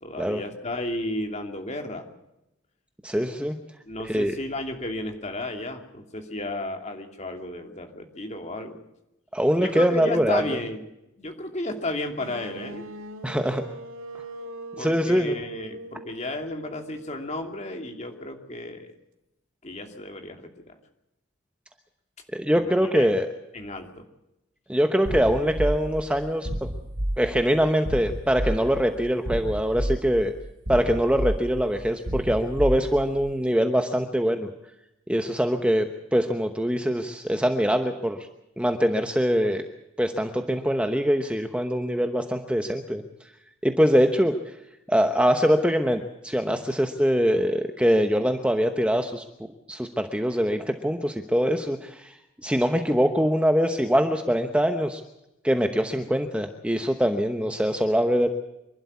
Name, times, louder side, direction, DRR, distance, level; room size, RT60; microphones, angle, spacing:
voice 1, 0.0-2.1 3.8-8.8 9.6-10.8 11.2-12.9 14.8-18.9 19.6-20.7 22.6-23.1 23.5-24.0, left 1 dB, 35° left, 4 dB, 2.8 m, -33 dB
voice 2, 3.0-3.6 4.0-4.3 9.3-10.4 13.2-13.6 14.8-15.4 22.3-23.3 24.7-26.5 27.2-30.3 30.7-34.5 35.1-38.2 38.6-39.6 40.0-43.0 43.6-44.3 44.9-49.2 49.7-52.1 52.4-55.0 55.4-58.3, equal, 5° right, 6 dB, 0.9 m, -23 dB
sound 1, 12.2-18.1, right 1 dB, 85° right, 2.1 m, -41 dB
sound 2, 25.1-33.3, right 1 dB, 50° right, 1.6 m, -31 dB
26.5 x 12.0 x 8.5 m, 0.88 s
head